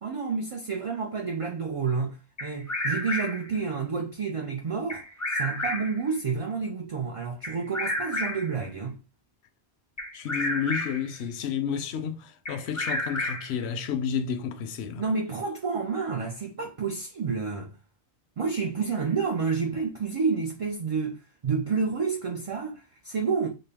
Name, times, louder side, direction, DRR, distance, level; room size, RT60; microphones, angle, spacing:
voice 1, 0.0-9.0 15.0-17.7 18.4-23.5, right 5 dB, 45° right, 0.4 m, -29 dB
Bird vocalization bird call bird song, 2.4-3.5 4.9-6.0 7.4-8.6 10.0-11.1 12.4-13.6, left 1 dB, 20° left, 0.6 m, -31 dB
voice 2, 10.1-15.0, left 7 dB, 80° left, 0.8 m, -31 dB
4.0 x 2.2 x 3.4 m
omnidirectional pair, 1.1 m